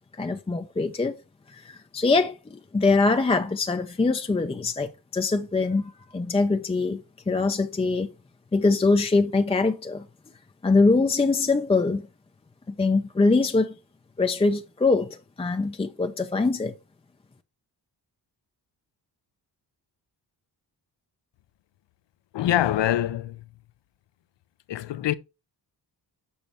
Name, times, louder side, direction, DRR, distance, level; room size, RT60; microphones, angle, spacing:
voice 1, 0.2-1.1 1.5-8.1 8.5-10.0 10.6-12.0 12.7-13.7 14.2-16.7, left 3 dB, 15° left, 0.4 m, -23 dB
voice 2, 22.3-23.4 24.7-25.1, left 13 dB, 80° left, 0.7 m, -24 dB
7.1 x 5.3 x 4.4 m
wide cardioid pair, 140°, 42 cm